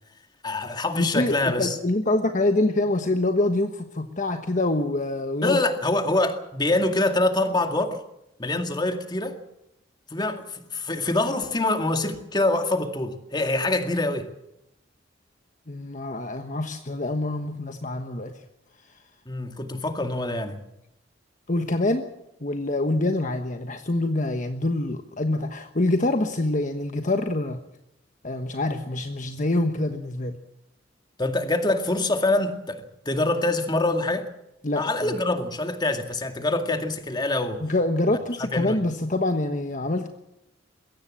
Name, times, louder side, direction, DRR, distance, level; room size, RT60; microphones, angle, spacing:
voice 1, 0.4-1.8 5.4-8.0 8.4-9.4 10.1-14.3 19.3-20.6 31.2-34.3 34.7-37.6 38.4-38.8, left 2 dB, 25° left, 2.1 m, -25 dB
voice 2, 1.0-5.6 15.7-18.4 21.5-22.1 22.4-27.6 28.2-30.4 34.6-35.2 37.6-40.1, left 2 dB, 40° left, 1.3 m, -25 dB
22.0 x 17.0 x 7.5 m
head